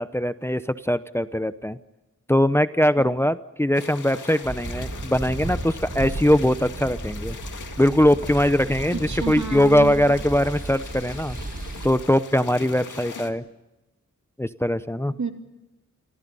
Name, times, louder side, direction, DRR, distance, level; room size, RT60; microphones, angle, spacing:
voice 1, 0.0-1.8 2.3-7.4 7.8-11.4 11.8-13.4 14.4-15.1, left 1 dB, 10° left, 12 dB, 0.7 m, -21 dB
sound 1, 3.7-13.3, left 5 dB, 80° left, 2.1 m, -41 dB
sound 2, 4.4-11.9, right 2 dB, 30° right, 7.4 m, -34 dB
voice 2, 8.9-10.0 15.1-15.3, right 5 dB, 70° right, 5 dB, 3.0 m, -30 dB
29.5 x 24.0 x 5.5 m, 1.0 s
wide cardioid pair, 105°, 30 cm